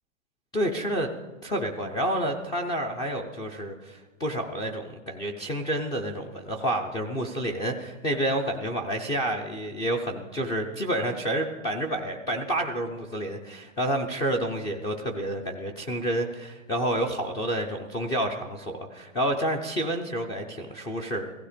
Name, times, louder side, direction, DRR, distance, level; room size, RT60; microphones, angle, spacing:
voice 1, 0.5-1.1 1.4-21.3, right 1 dB, 10° left, 1 dB, 0.4 m, -29 dB
15.5 x 15.5 x 5.0 m, 1.3 s
hypercardioid pair, 145°, 39 cm